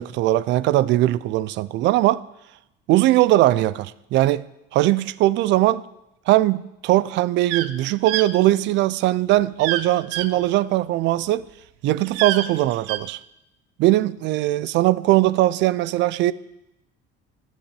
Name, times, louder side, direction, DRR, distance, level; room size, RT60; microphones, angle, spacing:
voice 1, 0.0-2.2 2.9-4.5 4.7-5.8 6.3-11.4 11.8-13.2 13.8-16.3, right 15 dB, 60° right, 0.6 m, -20 dB
sound 1, 7.4-7.7 8.1-8.3 9.6-9.8 10.1-10.3 12.0-13.0, right 13 dB, 85° right, 1.0 m, -26 dB
12.0 x 7.4 x 9.9 m
cardioid pair, 135°, 21 cm